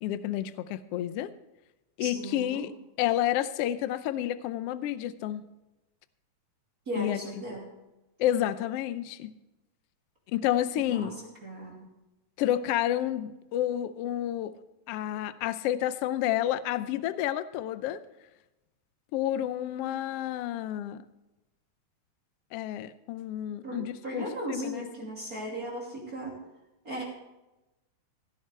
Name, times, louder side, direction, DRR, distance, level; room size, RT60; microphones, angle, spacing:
voice 1, 0.0-1.3 2.0-2.7 3.0-5.4 7.0-7.2 8.2-9.3 10.3-11.1 12.4-14.5 14.9-18.0 19.1-21.0 22.5-24.9, left 12 dB, 80° left, 13 dB, 1.3 m, -30 dB
voice 2, 2.0-2.6 6.9-7.7 10.9-11.1 11.4-11.9 23.6-26.4 26.8-27.0, right 1 dB, 30° right, -3 dB, 2.8 m, -37 dB
17.0 x 11.5 x 3.3 m, 0.99 s
omnidirectional pair, 3.5 m